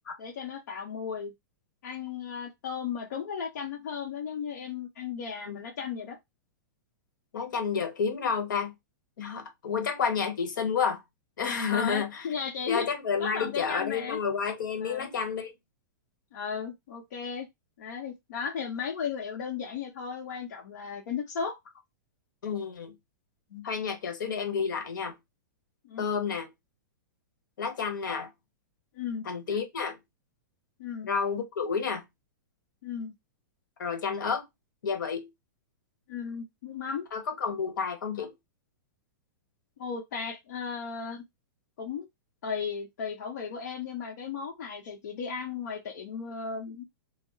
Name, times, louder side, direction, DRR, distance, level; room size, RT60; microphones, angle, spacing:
voice 1, 0.2-1.3 1.8-6.2 11.7-12.9 13.2-14.2 14.8-15.1 16.3-17.5 17.8-21.6 25.8-26.2 28.9-29.3 30.8-31.1 32.8-33.1 36.1-37.1 39.8-41.2 41.8-42.1 42.4-46.8, left 6 dB, 65° left, 0.7 m, -35 dB
voice 2, 7.3-8.7 9.2-11.0 11.4-12.3 12.7-15.5 22.4-22.9 23.5-25.1 26.0-26.5 27.6-28.3 29.2-30.0 31.0-32.0 33.8-34.4 34.8-35.3 37.1-38.3, left 6 dB, 85° left, 1.0 m, -30 dB
2.3 x 2.0 x 3.7 m
hypercardioid pair, 160°, 10 cm